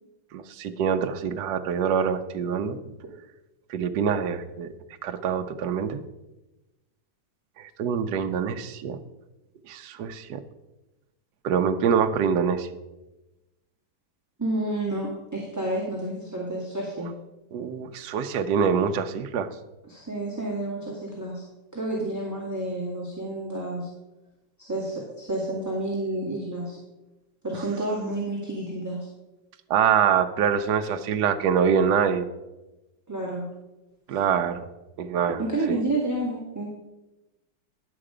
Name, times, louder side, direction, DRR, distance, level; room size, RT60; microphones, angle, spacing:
voice 1, 0.3-2.8 3.7-4.7 5.0-6.0 7.6-9.0 9.7-10.4 11.4-12.7 17.5-19.5 29.7-32.3 34.1-34.7 35.0-35.4 35.7-35.8, right 7 dB, 70° right, 8 dB, 1.2 m, -25 dB
voice 2, 14.4-17.1 19.9-21.4 21.7-23.9 24.6-26.8 27.4-29.1 33.1-33.4 35.4-36.7, right 2 dB, 10° right, -5 dB, 1.8 m, -30 dB
10.5 x 7.8 x 4.9 m, 1.0 s
omnidirectional pair, 2.0 m